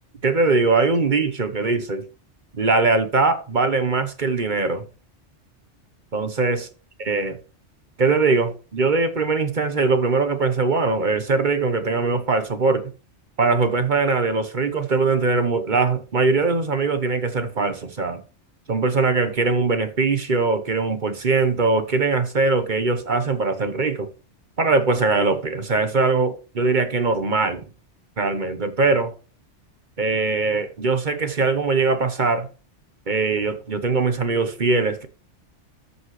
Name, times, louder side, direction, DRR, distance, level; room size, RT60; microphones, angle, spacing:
voice 1, 0.2-2.0 2.5-4.8 6.1-6.7 7.0-7.4 8.0-12.9 13.4-18.2 18.7-24.1 24.6-27.7 28.2-29.1 30.0-32.5 33.1-35.1, right 3 dB, 45° right, 1.1 m, -21 dB
13.5 x 5.6 x 3.2 m
omnidirectional pair, 1.2 m